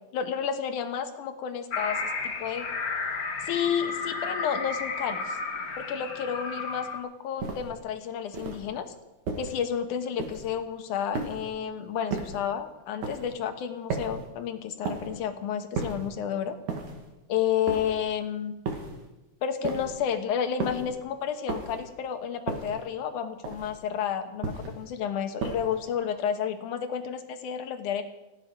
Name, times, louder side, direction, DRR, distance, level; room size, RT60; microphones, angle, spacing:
voice 1, 0.1-2.0 2.3-2.7 3.4-5.4 5.8-8.9 9.4-16.6 17.3-18.5 19.4-28.0, left 8 dB, 90° left, 8 dB, 2.7 m, -31 dB
sound 1, 1.7-7.0, left 4 dB, 40° left, 1.3 m, -33 dB
sound 2, 7.4-7.8 8.3-8.7 9.3-9.6 10.2-10.6 11.1-11.6 12.1-12.5 13.0-13.4 13.9-14.3 14.9-15.2 15.8-16.1 16.7-17.1 17.7-18.1 18.7-19.0 19.6-20.1 20.6-21.0 21.5-21.9 22.5-22.9 23.4-23.8 24.4-24.8 25.4-25.8, right 4 dB, 80° right, 3.5 m, -34 dB
29.5 x 9.9 x 4.9 m, 1.0 s
omnidirectional pair, 3.4 m